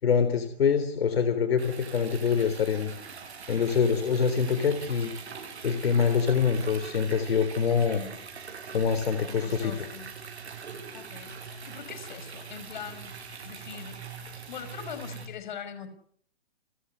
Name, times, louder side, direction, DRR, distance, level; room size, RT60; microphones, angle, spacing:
voice 1, 0.0-2.9 3.5-5.1 5.6-8.0 8.7-9.9, left 6 dB, 70° left, 9 dB, 3.5 m, -25 dB
Liquid, 1.6-15.2, right 5 dB, 85° right, 7.6 m, -42 dB
voice 2, 7.8-8.1 9.3-10.1 10.9-13.1 13.4-14.0 14.5-15.9, left 8 dB, 45° left, 11 dB, 5.6 m, -42 dB
30.0 x 14.5 x 9.8 m, 0.63 s
hypercardioid pair, 175°, 32 cm